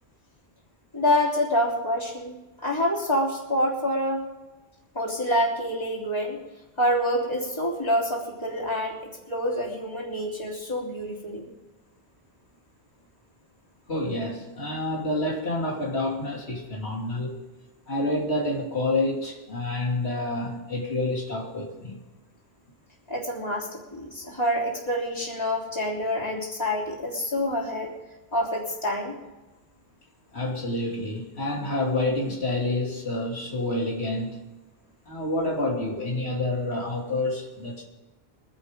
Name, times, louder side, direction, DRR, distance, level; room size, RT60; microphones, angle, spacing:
voice 1, 0.9-4.2 5.0-6.4 6.8-11.5 23.1-27.9 28.3-29.2, equal, 25° left, -5 dB, 3.5 m, -27 dB
voice 2, 13.9-17.4 17.9-22.0 30.3-34.4 35.0-37.8, left 2 dB, 90° left, -3 dB, 3.1 m, -28 dB
24.0 x 11.0 x 3.8 m, 1.1 s
omnidirectional pair, 1.1 m